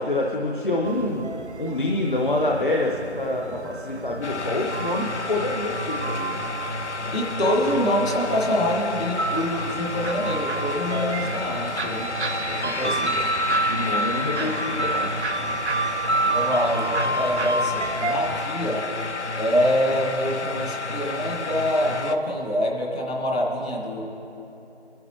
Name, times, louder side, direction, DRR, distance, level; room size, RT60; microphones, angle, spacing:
voice 1, 0.0-1.3 1.6-6.4 12.4-12.9 13.6-15.1, left 2 dB, 45° left, -1 dB, 0.8 m, -27 dB
sound 1, 0.8-18.4, right 2 dB, 75° right, 0.9 m, -29 dB
sound 2, 4.2-22.2, left 3 dB, 80° left, 0.7 m, -31 dB
voice 2, 7.1-12.1 12.6-13.2 14.4-14.5 16.2-18.8 19.3-24.0, equal, 65° left, -2 dB, 2.6 m, -25 dB
22.0 x 10.5 x 3.1 m, 2.9 s
figure-of-eight pair, 165°, 34 cm